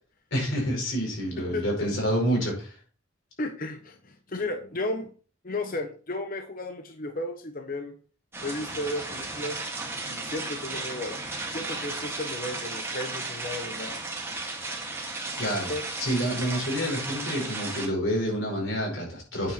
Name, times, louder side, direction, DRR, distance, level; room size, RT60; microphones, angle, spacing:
voice 1, 0.3-2.8 15.4-15.7 16.0-19.5, equal, 65° left, -1 dB, 5.1 m, -28 dB
voice 2, 3.4-5.1 5.4-7.9 8.4-9.6 10.0-11.2 11.5-13.9 15.7-15.8, left 2 dB, 40° left, 6 dB, 1.0 m, -34 dB
sound 1, 8.3-17.9, right 2 dB, 10° right, 1.7 m, -35 dB
8.9 x 7.3 x 4.4 m, 0.38 s
head